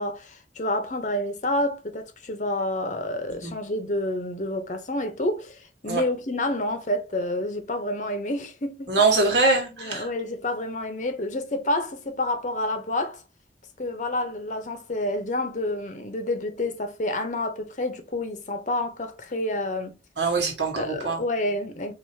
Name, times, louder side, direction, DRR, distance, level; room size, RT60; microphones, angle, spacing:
voice 1, 0.0-8.9 9.8-13.2 13.8-19.9 20.8-21.9, left 1 dB, 45° left, 0.8 m, -29 dB
voice 2, 8.9-10.1 20.2-21.2, right 3 dB, 80° right, 1.4 m, -23 dB
4.7 x 2.6 x 2.7 m
head